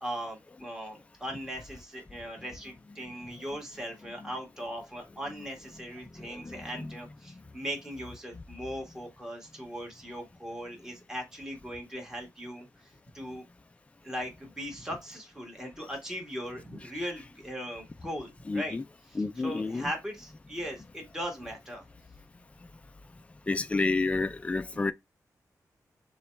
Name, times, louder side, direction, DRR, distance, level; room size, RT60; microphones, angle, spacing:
voice 1, 0.0-13.4 14.0-18.8 19.1-21.9 23.5-23.6 24.7-24.8, equal, 10° right, 1.5 m, -39 dB
voice 2, 6.4-7.0 18.5-18.8 19.2-19.9 23.5-24.9, left 3 dB, 20° left, 0.4 m, -30 dB
6.8 x 2.3 x 3.1 m
wide cardioid pair, 115°, 6 cm